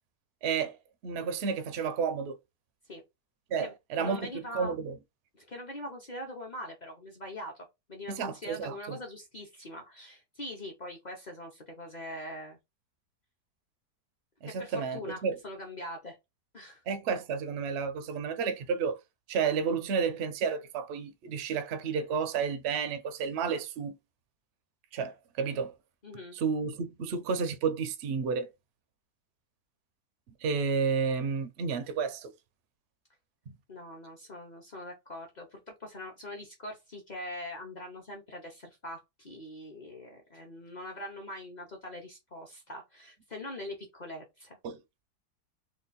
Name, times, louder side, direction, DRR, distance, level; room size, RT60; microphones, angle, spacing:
voice 1, 0.4-0.8 1.0-2.3 3.5-5.0 8.1-9.0 14.4-15.4 16.9-19.0 19.3-23.9 24.9-25.7 26.3-28.5 30.4-32.3 44.6-44.8, right 6 dB, 75° right, 0.6 m, -31 dB
voice 2, 3.6-4.7 5.3-12.6 14.4-16.2 16.5-16.8 26.0-26.4 33.7-44.6, left 1 dB, 50° left, 0.5 m, -43 dB
3.2 x 2.3 x 4.0 m
omnidirectional pair, 1.8 m